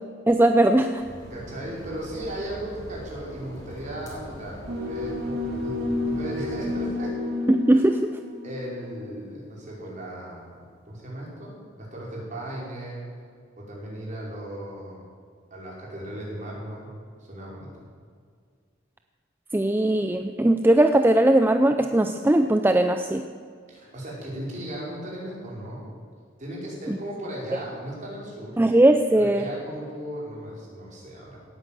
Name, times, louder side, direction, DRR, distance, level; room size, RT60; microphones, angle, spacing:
voice 1, 0.3-1.0 7.5-8.1 19.5-23.2 26.9-27.0 28.6-29.5, right 1 dB, 10° right, 7 dB, 0.5 m, -19 dB
sound 1, 1.0-7.0, equal, 20° left, 4.2 m, -42 dB
voice 2, 1.3-5.8 6.1-7.1 7.7-7.9 8.4-13.0 13.6-15.1 15.5-16.9 17.3-17.9 23.7-25.8 26.4-28.6 29.1-31.4, right 1 dB, 40° right, -4 dB, 5.2 m, -36 dB
sound 2, 4.7-9.1, left 2 dB, 55° right, 2.0 m, -30 dB
17.5 x 9.6 x 7.5 m, 2.1 s
head